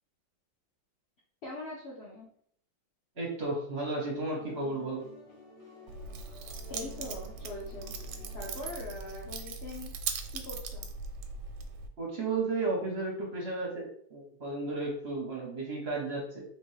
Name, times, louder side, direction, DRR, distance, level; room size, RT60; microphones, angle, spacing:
voice 1, 1.4-2.3 6.7-7.9 8.3-9.9 10.3-10.9, left 2 dB, 65° left, -5 dB, 0.6 m, -42 dB
voice 2, 3.2-5.0 12.0-16.4, right 3 dB, 45° right, -2 dB, 0.8 m, -33 dB
sound 1, 3.8-8.9, left 2 dB, 45° left, 1.7 m, -53 dB
Keys jangling, 5.9-11.9, right 5 dB, 90° right, 1.5 m, -40 dB
4.4 x 3.1 x 3.2 m, 0.63 s
omnidirectional pair, 2.3 m